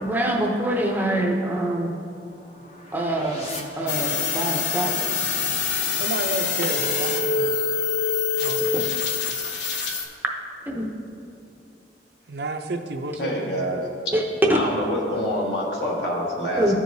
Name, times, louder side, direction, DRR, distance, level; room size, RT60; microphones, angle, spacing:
voice 1, 0.0-1.9 2.9-3.5 3.8-5.2 10.7-10.9 14.1-14.2 16.6-16.8, right 1 dB, 10° right, 0 dB, 0.6 m, -25 dB
sound 1, 1.3-4.7, left 2 dB, 35° left, 0.7 m, -42 dB
sound 2, 3.9-10.1, left 5 dB, 85° left, 0.9 m, -25 dB
voice 2, 5.9-7.6 8.4-9.1 12.3-13.7, right 2 dB, 65° right, 5 dB, 0.5 m, -31 dB
voice 3, 13.2-13.9 14.5-16.8, equal, 65° left, -3 dB, 1.5 m, -26 dB
14.0 x 4.8 x 2.7 m, 2.6 s
head